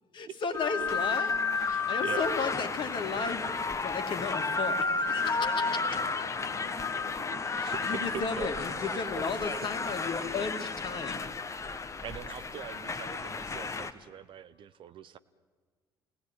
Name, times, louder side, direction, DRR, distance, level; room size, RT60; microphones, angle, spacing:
voice 1, 0.1-5.8 7.6-11.2, left 5 dB, 45° left, 7 dB, 2.4 m, -34 dB
sound 1, 0.5-13.9, left 4 dB, 25° left, 1.4 m, -32 dB
voice 2, 0.7-2.7 4.9-8.0, left 5 dB, 70° left, 7 dB, 2.2 m, -51 dB
voice 3, 1.6-2.3 7.3-8.5 9.5-9.7 10.2-10.5 10.8-10.9 12.0-15.2, right 9 dB, 45° right, 13 dB, 0.9 m, -43 dB
28.5 x 18.5 x 9.1 m, 1.5 s
figure-of-eight pair, 55°, 12 cm